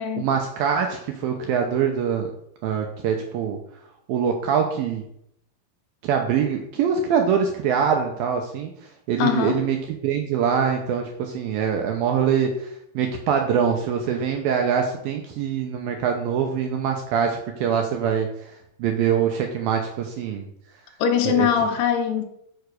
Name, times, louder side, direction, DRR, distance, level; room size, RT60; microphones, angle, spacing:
voice 1, 0.2-2.3 2.6-3.6 4.1-5.0 6.0-9.8 10.0-20.5 21.3-21.5, right 7 dB, 80° right, 3 dB, 2.2 m, -24 dB
voice 2, 9.2-9.6 21.0-22.2, left 8 dB, 80° left, 6 dB, 2.9 m, -22 dB
7.0 x 6.9 x 6.4 m, 0.76 s
omnidirectional pair, 5.1 m